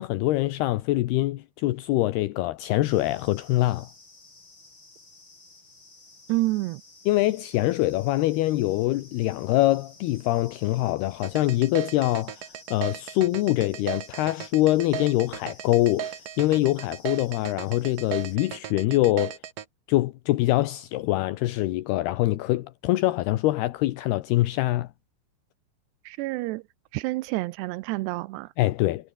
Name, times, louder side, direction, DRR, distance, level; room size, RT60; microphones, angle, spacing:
voice 1, 0.0-3.9 7.1-19.4 19.9-24.9 28.6-29.1, left 17 dB, 75° left, 2.9 m, -24 dB
sound 1, 2.9-18.4, left 3 dB, 25° left, 7.1 m, -53 dB
voice 2, 6.3-6.8 26.1-26.6 26.9-28.5, right 20 dB, 85° right, 2.8 m, -28 dB
sound 2, 11.2-19.6, right 10 dB, 60° right, 3.0 m, -36 dB
omnidirectional pair, 4.8 m